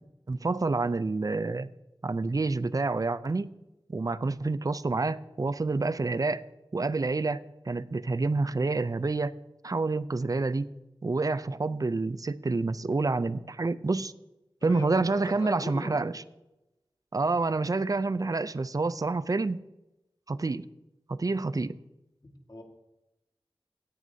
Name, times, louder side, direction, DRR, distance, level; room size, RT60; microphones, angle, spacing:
voice 1, 0.3-1.7 2.0-3.5 3.9-6.4 6.7-9.4 9.6-10.7 11.0-14.1 14.6-16.1 17.1-19.6 20.3-20.7 21.1-21.8, right 3 dB, 40° right, 0.4 m, -28 dB
voice 2, 14.6-16.1 22.2-22.6, left 1 dB, 45° left, 1.7 m, -40 dB
16.5 x 9.3 x 2.7 m
wide cardioid pair, 60°, 9 cm